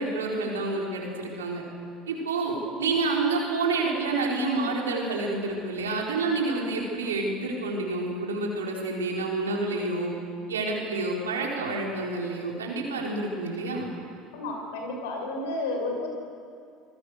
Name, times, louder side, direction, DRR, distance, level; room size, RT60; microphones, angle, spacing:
voice 1, 0.0-1.6 2.1-10.1 10.5-13.9, right 3 dB, 90° right, -1 dB, 4.5 m, -28 dB
voice 2, 14.3-16.1, left 2 dB, 75° left, 2 dB, 6.1 m, -31 dB
27.0 x 20.0 x 6.8 m, 2.3 s
hypercardioid pair, 75°, 0 cm